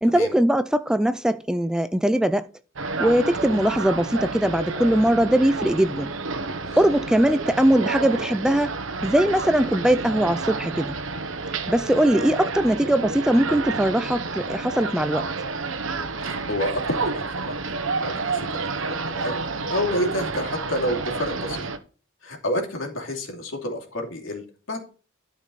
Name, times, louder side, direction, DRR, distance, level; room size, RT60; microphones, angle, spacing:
voice 1, 0.0-2.4 3.0-6.1 6.8-8.7 9.0-11.0 11.7-15.2, right 1 dB, 5° right, 0.3 m, -21 dB
sound 1, 2.8-21.8, right 3 dB, 75° right, 1.1 m, -30 dB
voice 2, 16.2-19.4 19.7-21.7 22.2-24.8, left 1 dB, 75° left, 2.8 m, -29 dB
12.5 x 5.2 x 4.0 m
head